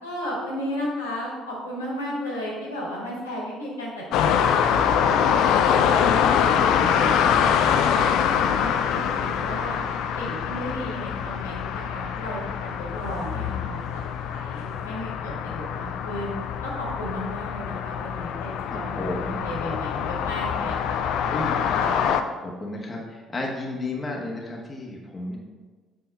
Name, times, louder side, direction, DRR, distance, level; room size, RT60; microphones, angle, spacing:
voice 1, 0.0-8.0 8.3-9.8 10.2-14.0 14.3-16.3 16.6-21.0 21.4-22.1, left 1 dB, 80° left, -5 dB, 1.9 m, -34 dB
sound 1, 4.1-22.2, left 8 dB, 60° left, 0.4 m, -24 dB
voice 2, 6.1-7.0 13.3-13.8 18.7-19.4 21.3-21.7 22.4-25.4, left 2 dB, 20° left, -2 dB, 1.4 m, -33 dB
7.7 x 3.6 x 5.4 m, 1.3 s
figure-of-eight pair, 50°, 0 cm